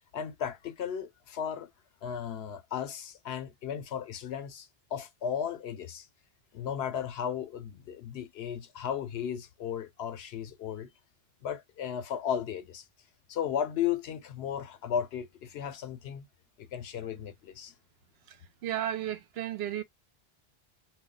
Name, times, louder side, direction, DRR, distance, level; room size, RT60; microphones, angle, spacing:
voice 1, 0.1-1.7 2.0-6.1 6.5-10.9 11.4-12.8 13.3-16.3 16.6-17.7, left 8 dB, 80° left, 0.9 m, -35 dB
voice 2, 18.3-19.8, right 11 dB, 80° right, 0.8 m, -34 dB
2.2 x 2.2 x 3.7 m
omnidirectional pair, 1.0 m